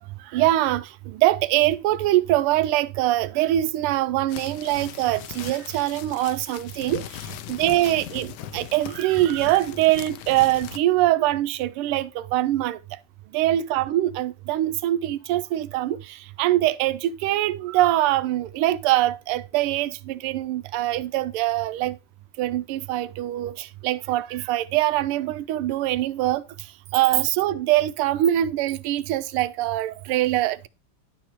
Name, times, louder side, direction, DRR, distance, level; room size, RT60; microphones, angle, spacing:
voice 1, 0.3-7.0 7.5-12.8 13.3-22.0 22.4-26.4 26.9-30.7, right 14 dB, 85° right, 1.5 m, -23 dB
sound 1, 4.3-10.8, left 11 dB, 75° left, 0.9 m, -39 dB
11.0 x 4.6 x 3.0 m
omnidirectional pair, 2.4 m